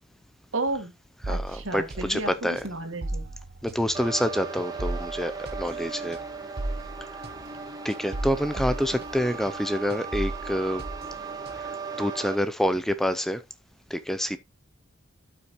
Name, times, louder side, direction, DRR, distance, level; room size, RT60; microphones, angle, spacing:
voice 1, 0.5-0.9 1.3-3.3, right 2 dB, 75° right, 2.1 m, -32 dB
sound 1, 1.2-9.6 9.9-11.8, right 1 dB, 50° right, 0.9 m, -36 dB
voice 2, 1.3-2.7 3.6-6.2 7.8-10.8 11.6-11.7 12.0-13.4 13.9-14.4, equal, ahead, 0.4 m, -27 dB
sound 2, 3.9-12.3, right 5 dB, 20° right, 1.3 m, -37 dB
12.5 x 5.8 x 3.0 m
head